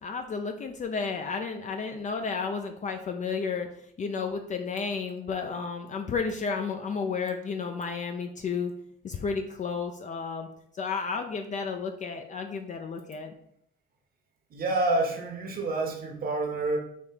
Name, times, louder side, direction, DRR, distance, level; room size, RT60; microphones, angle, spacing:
voice 1, 0.0-3.7 4.0-8.7 9.0-10.5 10.8-13.3, left 5 dB, 40° left, 5 dB, 0.4 m, -32 dB
voice 2, 14.5-16.8, right 2 dB, 50° right, 2 dB, 1.0 m, -28 dB
3.5 x 2.7 x 4.5 m, 0.71 s
supercardioid pair, 75°, 20 cm